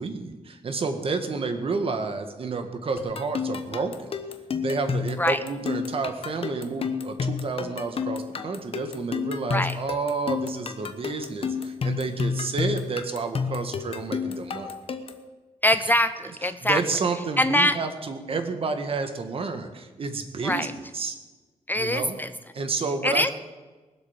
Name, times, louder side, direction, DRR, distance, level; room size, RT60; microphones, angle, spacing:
voice 1, 0.0-4.1 4.6-14.7 16.6-21.2 21.7-22.2 22.5-23.3, right 4 dB, 50° right, 7 dB, 1.7 m, -30 dB
sound 1, 3.0-15.3, left 6 dB, 50° left, 1.1 m, -31 dB
voice 2, 15.6-16.8 17.4-17.8 20.4-20.7 21.7-22.3 23.0-23.3, left 1 dB, 15° left, 12 dB, 0.4 m, -23 dB
21.0 x 8.1 x 7.3 m, 1.2 s
wide cardioid pair, 160°, 13 cm